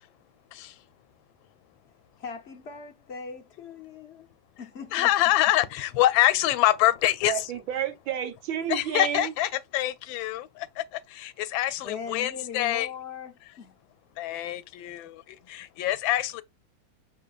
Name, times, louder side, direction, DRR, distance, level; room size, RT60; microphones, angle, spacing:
voice 1, 2.2-4.3 4.6-5.1 11.8-13.8, left 6 dB, 60° left, 0.6 m, -40 dB
voice 2, 4.9-7.5 8.7-10.4 11.2-12.9 14.2-16.4, left 14 dB, 90° left, 1.3 m, -25 dB
voice 3, 7.3-9.3, right 10 dB, 85° right, 1.6 m, -30 dB
6.2 x 3.3 x 2.3 m
omnidirectional pair, 2.1 m